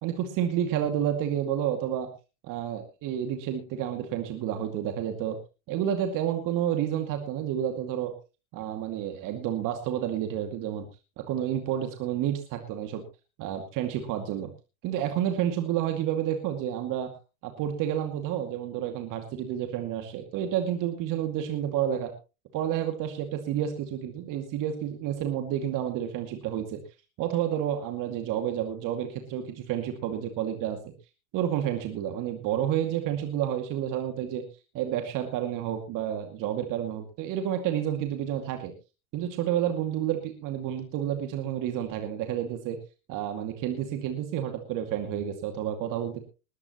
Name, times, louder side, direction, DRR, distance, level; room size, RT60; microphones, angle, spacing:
voice 1, 0.0-2.1 2.4-5.4 5.7-8.1 8.5-10.9 11.3-13.0 13.4-14.5 14.8-17.1 17.4-22.1 22.5-26.8 27.2-30.9 31.3-34.4 34.7-38.7 39.1-42.8 43.1-46.2, right 10 dB, 45° right, 5 dB, 2.4 m, -30 dB
20.0 x 13.0 x 3.0 m, 0.32 s
hypercardioid pair, 95°, 43 cm